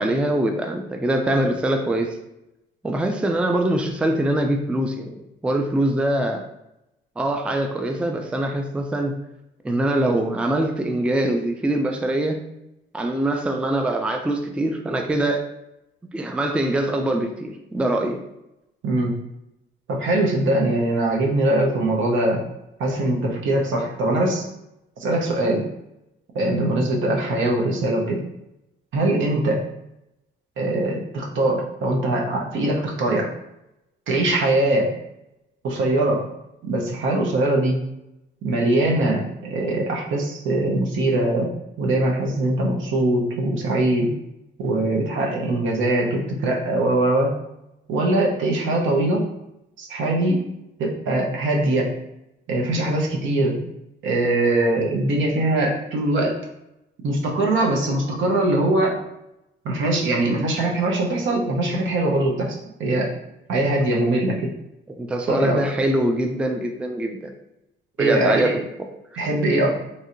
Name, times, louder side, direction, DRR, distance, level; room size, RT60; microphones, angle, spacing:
voice 1, 0.0-2.2 2.8-5.2 5.4-6.4 7.2-9.2 9.6-12.4 12.9-15.5 16.1-18.2 65.0-67.3 68.0-68.6, right 1 dB, 5° right, 4 dB, 0.3 m, -23 dB
voice 2, 19.9-22.4 22.8-24.4 25.0-25.7 26.3-28.2 28.9-29.6 30.6-33.3 34.1-34.9 35.6-36.3 36.6-37.8 38.4-41.5 41.8-44.1 44.6-47.3 47.9-49.3 49.8-50.5 50.8-51.9 52.5-53.6 54.0-56.4 57.0-59.0 59.6-63.1 63.5-64.5 65.3-65.6 68.0-68.6 69.2-69.7, right 2 dB, 75° right, 0 dB, 0.8 m, -22 dB
3.2 x 2.7 x 2.5 m, 0.87 s
cardioid pair, 90°, 20 cm